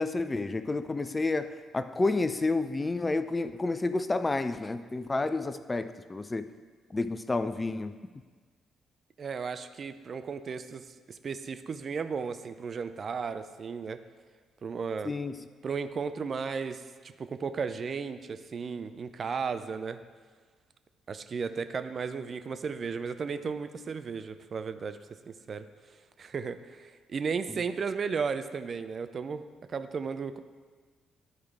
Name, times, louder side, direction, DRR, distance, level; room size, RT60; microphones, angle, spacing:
voice 1, 0.0-6.5 6.9-7.9 15.0-15.4, left 3 dB, 25° left, 12 dB, 0.4 m, -30 dB
voice 2, 9.2-14.0 14.6-15.1 15.6-20.0 21.1-25.0 25.5-25.6 26.2-29.4 29.7-30.4, right 5 dB, 45° right, 10 dB, 0.4 m, -34 dB
11.5 x 4.7 x 3.5 m, 1.5 s
figure-of-eight pair, 45°, 0 cm